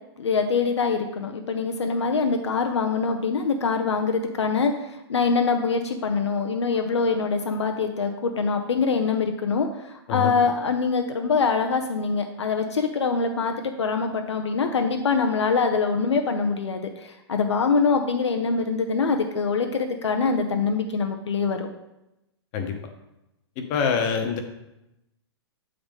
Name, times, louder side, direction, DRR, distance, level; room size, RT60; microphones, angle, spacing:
voice 1, 0.2-21.7, left 5 dB, 85° left, 5 dB, 0.6 m, -24 dB
voice 2, 23.6-24.4, left 6 dB, 40° left, 5 dB, 0.9 m, -25 dB
7.8 x 3.8 x 3.5 m, 0.90 s
hypercardioid pair, 115°, 14 cm